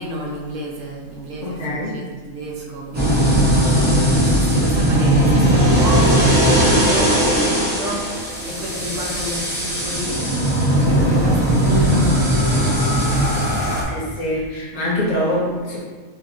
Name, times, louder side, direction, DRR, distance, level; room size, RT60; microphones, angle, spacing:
voice 1, 0.0-3.6 4.0-10.3 10.7-13.5 14.9-15.3, right 1 dB, 70° right, -2 dB, 1.0 m, -31 dB
voice 2, 1.4-2.0 11.6-12.2 13.8-15.8, left 1 dB, 65° left, -5 dB, 1.2 m, -24 dB
sound 1, 2.9-13.8, right 1 dB, 15° right, 0.3 m, -18 dB
5.1 x 2.5 x 2.3 m, 1.4 s
omnidirectional pair, 1.4 m